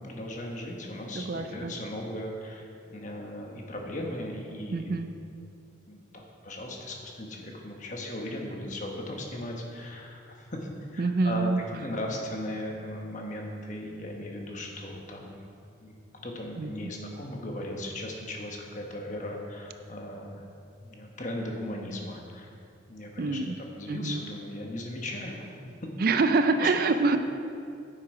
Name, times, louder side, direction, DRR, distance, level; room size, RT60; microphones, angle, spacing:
voice 1, 0.0-2.6 2.9-5.0 5.9-15.5 15.8-20.3 20.8-22.5 22.9-25.5 25.8-25.9 26.6-26.7, left 1 dB, 40° left, 1 dB, 1.2 m, -37 dB
voice 2, 1.1-1.8 4.7-5.2 11.0-11.6 16.6-16.9 23.2-23.5 23.9-24.2 26.0-27.2, right 3 dB, 50° right, 8 dB, 0.4 m, -26 dB
9.6 x 7.7 x 4.9 m, 2.5 s
head